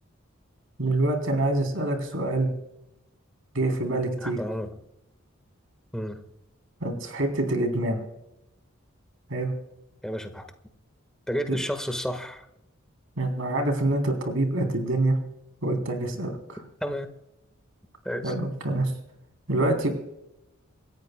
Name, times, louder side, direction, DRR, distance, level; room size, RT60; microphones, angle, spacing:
voice 1, 0.8-2.5 3.5-4.4 6.8-8.0 9.3-9.5 13.2-15.2 15.6-16.6 18.2-18.9 19.5-19.9, right 2 dB, 70° right, 4 dB, 3.5 m, -26 dB
voice 2, 4.2-4.7 5.9-6.2 10.0-10.4 11.3-12.5 16.8-17.1 18.0-18.3, equal, 5° left, 7 dB, 1.5 m, -31 dB
27.5 x 14.5 x 2.3 m, 0.85 s
head